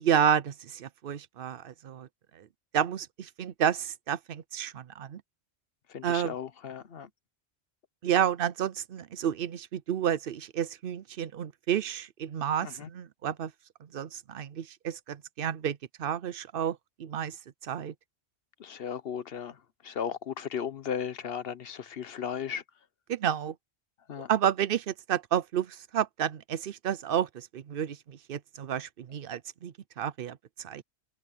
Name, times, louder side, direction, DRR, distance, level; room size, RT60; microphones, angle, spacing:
voice 1, 0.0-2.1 2.3-2.5 2.7-5.2 6.0-6.4 8.0-13.5 13.8-17.4 17.6-17.9 23.1-23.5 24.3-30.8, right 9 dB, 60° right, 0.8 m, -30 dB
voice 2, 5.9-7.1 12.6-12.9 18.6-19.6 19.8-22.6 24.1-24.3, left 8 dB, 60° left, 1.0 m, -36 dB
omnidirectional pair, 1.2 m